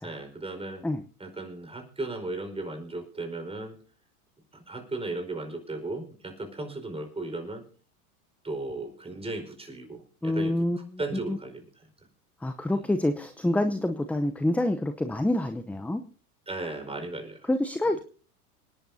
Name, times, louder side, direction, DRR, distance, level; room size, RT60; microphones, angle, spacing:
voice 1, 0.0-0.8 1.2-3.8 4.5-7.7 8.4-10.6 11.0-11.7 12.7-12.9 16.5-17.5, right 2 dB, 15° right, 5 dB, 4.8 m, -36 dB
voice 2, 10.2-11.0 11.3-11.4 12.4-16.0 17.5-18.0, left 1 dB, 5° left, 9 dB, 0.7 m, -27 dB
27.0 x 10.5 x 2.7 m, 0.40 s
hypercardioid pair, 95°, 45 cm